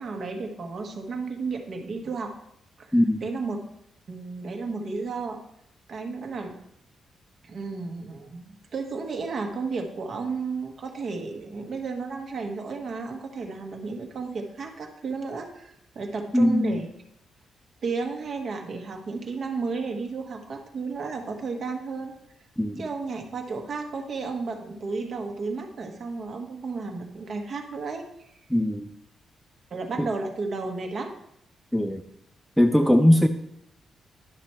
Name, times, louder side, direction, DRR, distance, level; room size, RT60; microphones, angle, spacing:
voice 1, 0.0-2.3 2.8-2.9 3.2-3.6 4.1-5.4 5.9-6.5 7.4-16.9 17.8-22.2 22.8-28.3 29.7-31.1, right 4 dB, 40° right, 3 dB, 1.2 m, -33 dB
voice 2, 16.3-16.8 22.6-22.8 28.5-28.9 30.0-30.1 31.7-32.0 32.6-33.3, left 1 dB, ahead, 8 dB, 0.3 m, -20 dB
11.0 x 6.0 x 4.3 m, 0.76 s
wide cardioid pair, 165°, 0 cm